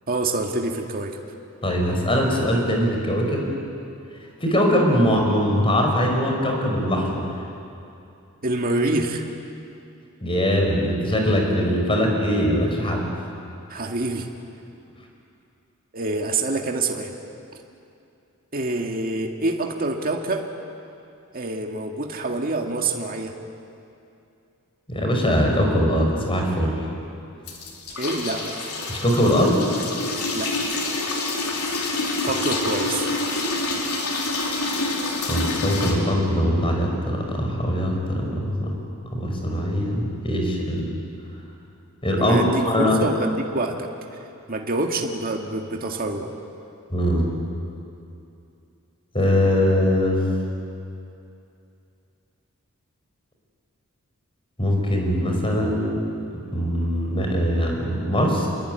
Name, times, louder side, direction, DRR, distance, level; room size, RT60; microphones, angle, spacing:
voice 1, 0.1-1.2 8.4-9.3 13.7-14.3 15.9-17.1 18.5-20.5 21.3-23.3 27.9-28.5 30.3-30.5 32.2-33.1 42.2-43.9 44.5-46.3, right 2 dB, 45° right, 2 dB, 2.1 m, -26 dB
voice 2, 1.6-3.5 4.4-7.3 10.2-13.1 24.9-26.7 28.9-29.6 35.3-38.7 39.1-40.8 42.0-43.0 46.9-47.3 49.1-50.2 54.6-56.0 56.5-58.5, equal, 25° left, 1 dB, 5.6 m, -21 dB
sound 1, 27.5-35.9, left 2 dB, 90° left, 4.1 m, -27 dB
27.0 x 22.0 x 9.6 m, 2.7 s
head